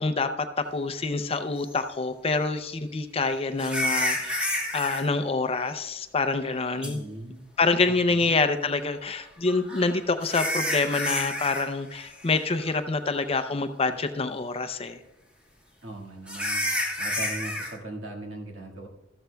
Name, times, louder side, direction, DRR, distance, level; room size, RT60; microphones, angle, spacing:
voice 1, 0.0-7.0 7.6-15.0, left 3 dB, 30° left, 8 dB, 0.6 m, -26 dB
sound 1, 1.7-1.8 3.6-5.0 6.8-6.9 9.5-11.7 11.9-12.3 12.7-12.8 13.4-13.5 16.3-17.7, left 1 dB, 5° right, 1.7 m, -29 dB
voice 2, 6.8-7.4 7.9-8.3 15.8-16.7 17.0-18.9, right 2 dB, 70° right, -1 dB, 1.9 m, -39 dB
14.0 x 13.0 x 2.3 m, 0.97 s
head